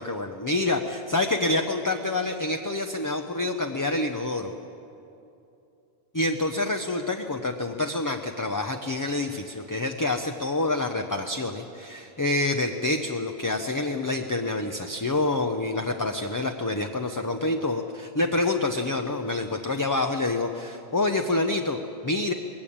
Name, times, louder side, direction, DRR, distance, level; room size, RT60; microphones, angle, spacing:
voice 1, 0.0-4.5 6.1-22.3, left 2 dB, 20° left, 4 dB, 0.7 m, -27 dB
20.5 x 16.0 x 8.7 m, 2.7 s
omnidirectional pair, 1.1 m